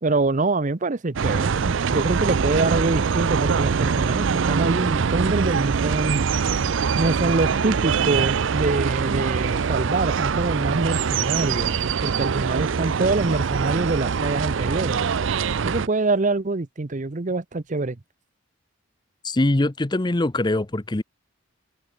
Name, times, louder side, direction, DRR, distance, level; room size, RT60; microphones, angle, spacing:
voice 1, 0.0-6.2 7.0-15.0 15.6-18.0, right 3 dB, 40° right, 0.8 m, -25 dB
sound 1, 1.2-15.9, right 6 dB, 65° right, 0.5 m, -23 dB
sound 2, 4.3-6.0 6.4-8.5 9.0-10.3 10.6-11.9 12.2-13.4 13.9-14.8 15.1-16.3, left 2 dB, 85° left, 5.7 m, -50 dB
voice 2, 19.2-21.0, left 2 dB, 20° left, 0.7 m, -22 dB
head